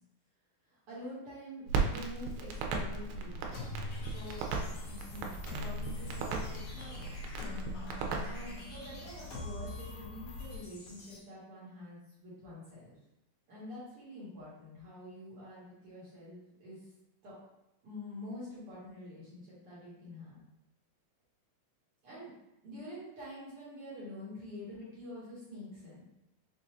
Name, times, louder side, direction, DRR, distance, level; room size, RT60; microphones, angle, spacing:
voice 1, 0.9-3.6 4.0-4.4 4.9-5.3 5.6-7.1 8.2-12.9 13.5-16.8 17.2-17.4 17.8-20.4 22.0-22.3 22.6-26.0, left 1 dB, 55° right, -9 dB, 1.7 m, -47 dB
Crackle, 1.7-8.6, right 4 dB, 90° right, 2.4 m, -37 dB
sound 1, 2.5-10.6, left 2 dB, 80° left, 2.4 m, -49 dB
sound 2, 3.5-11.2, left 2 dB, 60° left, 2.6 m, -45 dB
5.9 x 2.6 x 3.0 m, 0.90 s
omnidirectional pair, 4.1 m